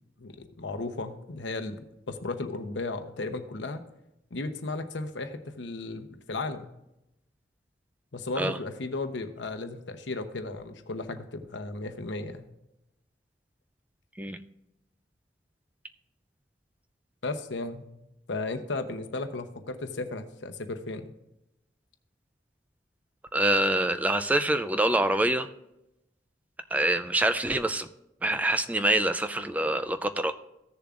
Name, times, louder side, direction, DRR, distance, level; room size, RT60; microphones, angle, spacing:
voice 1, 0.2-3.8 4.3-6.7 8.1-12.5 17.2-17.9 18.3-21.1, left 3 dB, 85° left, 8 dB, 0.9 m, -35 dB
voice 2, 23.3-25.5 26.7-27.9 28.2-30.3, right 1 dB, 10° right, 10 dB, 0.3 m, -25 dB
15.5 x 6.8 x 2.5 m, 0.88 s
head